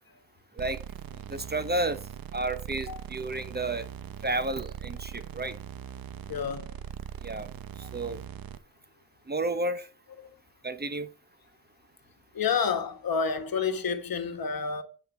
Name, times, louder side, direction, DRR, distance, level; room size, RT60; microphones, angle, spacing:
sound 1, 0.6-8.6, right 9 dB, 60° right, 0.8 m, -41 dB
voice 1, 1.3-2.0 2.3-3.9 4.2-5.6 7.2-7.5 7.9-8.2 9.3-9.9 10.6-11.1, right 2 dB, 25° right, 0.9 m, -31 dB
voice 2, 6.3-6.9 12.3-14.8, left 6 dB, 60° left, 1.3 m, -29 dB
7.9 x 4.4 x 6.3 m
supercardioid pair, 40°, 40 cm